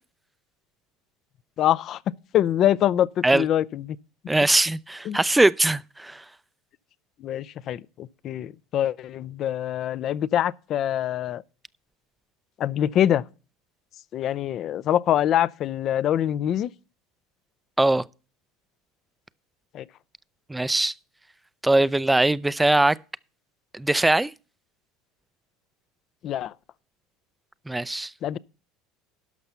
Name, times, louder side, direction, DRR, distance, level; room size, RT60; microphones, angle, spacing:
voice 1, 1.6-2.0 2.3-4.0 5.1-5.2 7.2-11.4 12.6-13.2 14.1-16.7 19.7-19.8 26.2-26.5 28.2-28.4, left 11 dB, 50° left, 0.4 m, -24 dB
voice 2, 4.3-6.2 17.8-18.0 20.5-20.9 21.6-23.0 23.7-24.3 27.7-28.1, right 2 dB, 10° right, 0.4 m, -21 dB
12.0 x 5.9 x 5.5 m
supercardioid pair, 100°, 0 cm